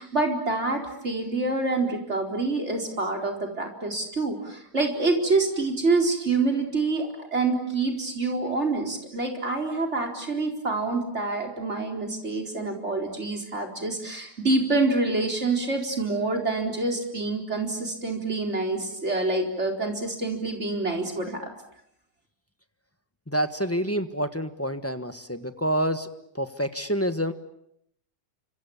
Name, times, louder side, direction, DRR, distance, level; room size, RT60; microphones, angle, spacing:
voice 1, 0.0-21.5, right 3 dB, 45° right, 2 dB, 4.7 m, -27 dB
voice 2, 23.3-26.1 26.3-27.3, equal, 10° left, 9 dB, 1.3 m, -27 dB
30.0 x 26.0 x 7.3 m, 0.74 s
omnidirectional pair, 1.6 m